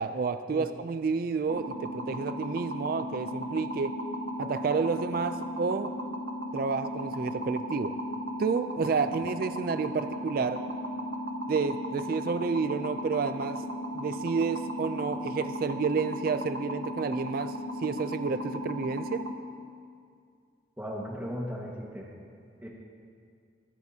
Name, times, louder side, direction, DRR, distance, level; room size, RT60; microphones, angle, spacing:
voice 1, 0.0-3.9 4.4-5.9 6.5-8.0 8.4-10.6 11.5-13.7 13.9-19.2, right 5 dB, 45° right, 10 dB, 0.3 m, -30 dB
sound 1, 1.5-19.3, equal, 75° right, 0.9 m, -36 dB
voice 2, 20.8-22.1 22.6-22.7, equal, 10° right, -3 dB, 1.5 m, -36 dB
22.5 x 9.3 x 2.8 m, 2.2 s
head